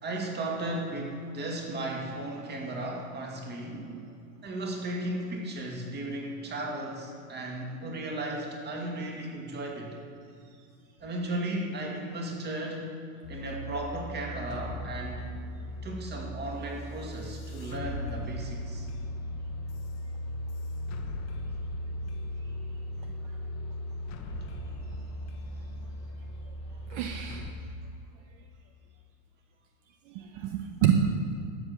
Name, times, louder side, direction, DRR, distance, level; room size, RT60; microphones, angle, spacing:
voice 1, 0.0-3.9 4.4-10.0 11.0-13.0 13.3-15.3 15.8-18.9, right 1 dB, 25° right, 0 dB, 2.3 m, -35 dB
sound 1, 13.2-27.5, left 1 dB, 35° left, 1.2 m, -37 dB
voice 2, 26.9-27.5 30.1-31.2, right 8 dB, 55° right, 5 dB, 0.9 m, -28 dB
12.5 x 7.5 x 6.7 m, 2.5 s
supercardioid pair, 135°, 44 cm